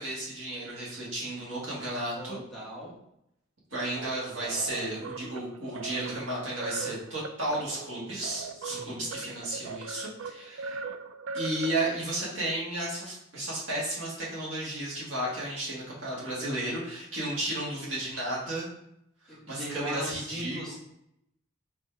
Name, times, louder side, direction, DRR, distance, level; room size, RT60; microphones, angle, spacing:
voice 1, 0.0-2.4 3.7-10.8 11.3-18.7 19.2-20.7, right 1 dB, 65° right, -6 dB, 1.7 m, -33 dB
voice 2, 2.2-3.0 8.5-9.0 19.3-20.7, right 1 dB, ahead, -8 dB, 1.1 m, -39 dB
sound 1, 4.0-12.2, right 4 dB, 80° right, 0.3 m, -40 dB
4.1 x 3.6 x 3.3 m, 0.78 s
head